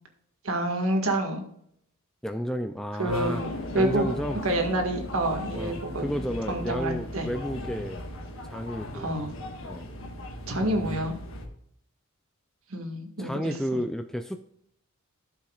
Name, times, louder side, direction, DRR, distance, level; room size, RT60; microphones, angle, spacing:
voice 1, 0.4-1.4 3.0-4.1 4.4-6.1 6.5-7.3 8.9-9.3 10.5-11.1 12.7-13.8, right 1 dB, 75° right, 3 dB, 1.8 m, -28 dB
voice 2, 2.2-3.4 3.7-4.4 5.5-8.0 8.4-9.1 9.6-9.9 10.6-11.0 13.2-14.4, equal, ahead, 7 dB, 0.4 m, -32 dB
sound 1, 3.1-11.5, left 1 dB, 65° left, 1.4 m, -37 dB
13.0 x 7.2 x 2.4 m, 0.71 s
head